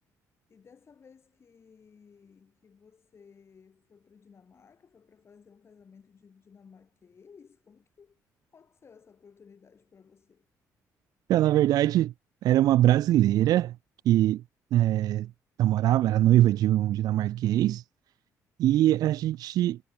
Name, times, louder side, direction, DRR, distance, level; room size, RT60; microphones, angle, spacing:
voice 1, 0.5-8.2 8.5-10.5, left 6 dB, 40° left, 8.0 m, -57 dB
voice 2, 11.3-12.1 12.4-13.8 14.1-14.4 14.7-15.3 15.6-17.8 18.6-19.8, right 13 dB, 75° right, 0.4 m, -22 dB
cardioid pair, 100°, 7 cm